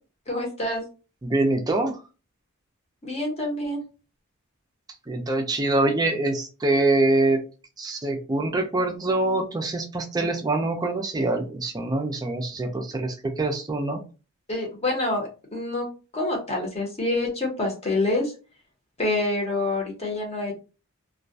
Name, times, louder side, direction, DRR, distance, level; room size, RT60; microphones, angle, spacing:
voice 1, 0.3-0.8 3.0-3.8 14.5-15.9 16.1-18.3 19.0-20.5, left 2 dB, 30° left, 0 dB, 0.8 m, -27 dB
voice 2, 1.2-2.0 5.1-7.4 7.8-14.0, right 2 dB, 20° right, 3 dB, 0.3 m, -24 dB
2.2 x 2.1 x 2.6 m, 0.33 s
head